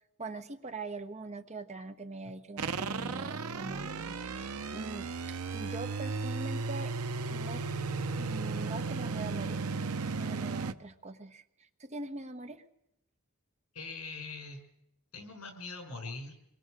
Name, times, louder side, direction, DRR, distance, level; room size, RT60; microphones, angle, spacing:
voice 1, 0.2-6.9 7.3-7.6 8.2-9.6 9.9-12.6, right 2 dB, 30° right, 8 dB, 1.2 m, -42 dB
sound 1, 2.6-10.7, right 4 dB, 75° right, 0.8 m, -35 dB
voice 2, 13.7-14.6 15.1-16.3, left 3 dB, 80° left, 4 dB, 5.9 m, -42 dB
26.5 x 22.5 x 6.6 m, 0.81 s
head